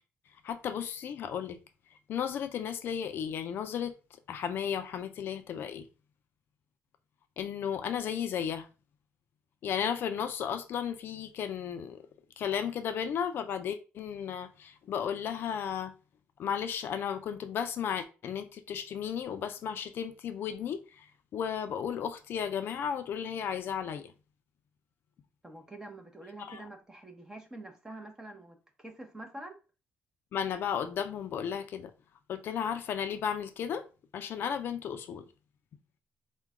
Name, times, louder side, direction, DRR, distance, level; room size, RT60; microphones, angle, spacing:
voice 1, 0.4-1.6 2.1-3.9 4.3-5.8 7.4-8.7 9.6-12.0 12.4-15.9 16.4-21.1 21.3-24.1 26.4-26.7 30.3-31.9 32.3-33.8 34.1-35.2, left 8 dB, 55° left, 0.4 m, -34 dB
voice 2, 25.4-29.6, right 1 dB, 15° right, 0.7 m, -46 dB
4.6 x 2.2 x 3.6 m
cardioid pair, 150°, 4 cm